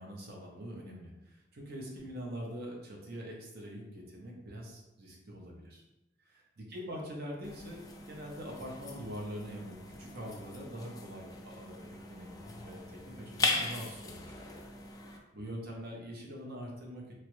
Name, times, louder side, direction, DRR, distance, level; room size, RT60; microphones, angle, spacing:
voice 1, 0.0-5.8 6.2-14.6 15.3-17.0, equal, 55° right, -1 dB, 0.7 m, -44 dB
sound 1, 7.4-15.2, left 3 dB, 20° left, 0.3 m, -39 dB
3.0 x 2.3 x 3.0 m, 0.96 s
head